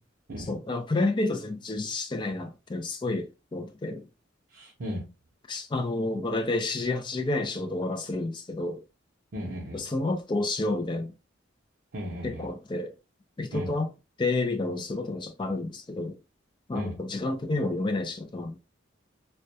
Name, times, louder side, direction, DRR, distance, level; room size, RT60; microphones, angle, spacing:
voice 1, 0.5-4.1 5.5-8.8 9.7-11.1 12.2-12.9 13.4-13.9 14.2-16.2 16.7-18.6, left 2 dB, 25° left, 0.3 m, -30 dB
voice 2, 4.5-5.1 9.3-9.9 11.9-12.5 13.5-13.7 16.7-17.0, equal, 55° right, 0.6 m, -36 dB
2.2 x 2.1 x 2.6 m
head